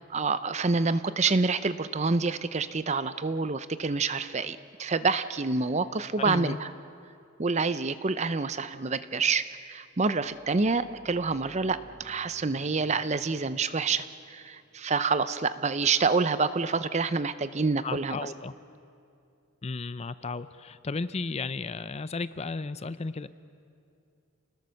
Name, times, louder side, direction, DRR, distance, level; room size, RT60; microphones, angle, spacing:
voice 1, 0.0-6.7 7.4-18.3, right 4 dB, 30° right, 13 dB, 0.6 m, -27 dB
voice 2, 6.2-6.6 17.8-18.5 19.6-23.3, left 3 dB, 30° left, 14 dB, 0.5 m, -34 dB
sound 1, 10.1-15.6, equal, 50° right, 3.6 m, -58 dB
29.5 x 20.0 x 6.4 m, 2.5 s
head